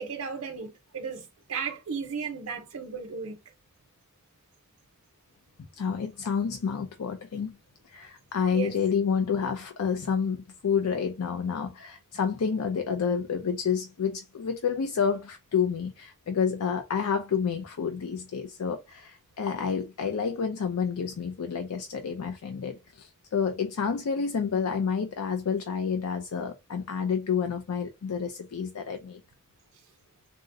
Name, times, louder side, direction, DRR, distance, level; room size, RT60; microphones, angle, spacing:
voice 1, 0.0-3.4 8.5-8.7, right 6 dB, 85° right, 0.7 m, -35 dB
voice 2, 5.8-7.6 7.9-29.2, left 6 dB, 85° left, 0.4 m, -29 dB
3.6 x 2.0 x 2.5 m
head